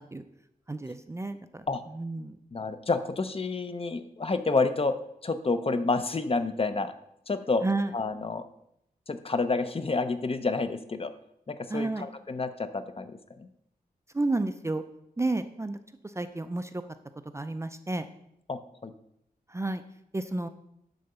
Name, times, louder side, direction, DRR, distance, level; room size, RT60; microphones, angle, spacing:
voice 1, 0.7-1.6 1.9-2.4 7.6-7.9 11.7-12.1 14.1-14.8 15.2-15.8 16.0-16.8 17.3-18.1 19.5-19.8 20.1-20.5, right 2 dB, 15° right, 9 dB, 0.4 m, -31 dB
voice 2, 2.5-4.9 5.2-6.9 7.3-7.6 7.9-8.4 9.1-11.1 11.5-13.5 18.5-18.9, left 3 dB, 35° left, 9 dB, 0.6 m, -29 dB
10.5 x 4.0 x 6.7 m, 0.77 s
wide cardioid pair, 130°, 16 cm